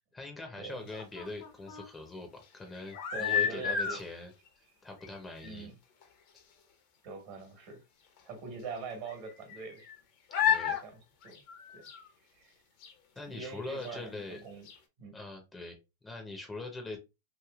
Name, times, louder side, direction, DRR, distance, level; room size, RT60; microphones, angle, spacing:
voice 1, 0.1-4.3 4.8-5.7 10.5-10.8 13.2-14.4 15.1-17.0, left 2 dB, 15° left, 0.8 m, -42 dB
sound 1, 0.9-1.9 2.8-4.0 5.0-5.2 5.4-5.5 6.0-6.1 6.4-6.5 8.2-8.3 9.1-10.0 10.3-10.8 11.2-12.1 12.8-12.9 13.8-13.9 14.3-14.4 14.7-14.8, left 8 dB, 55° left, 1.0 m, -32 dB
voice 2, 3.1-4.0 5.4-5.8 7.0-7.8 8.2-9.9 10.7-11.4 11.7-11.8 12.3-12.5 13.3-14.7 15.0-15.2, right 4 dB, 50° right, 1.4 m, -43 dB
3.1 x 2.6 x 2.4 m
hypercardioid pair, 115°, 0 cm